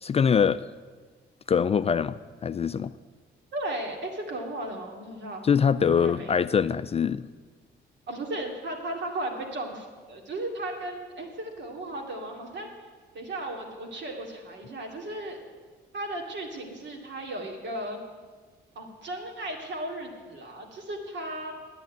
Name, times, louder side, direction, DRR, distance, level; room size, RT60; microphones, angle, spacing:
voice 1, 0.0-0.6 1.5-2.9 5.4-7.3, left 7 dB, 30° left, 13 dB, 0.3 m, -23 dB
voice 2, 3.5-5.4 5.8-6.3 8.1-12.7 13.1-15.4 15.9-18.0 18.7-21.5, right 1 dB, 65° right, 2 dB, 2.5 m, -35 dB
9.6 x 9.1 x 9.3 m, 1.4 s
cardioid pair, 90°, 20 cm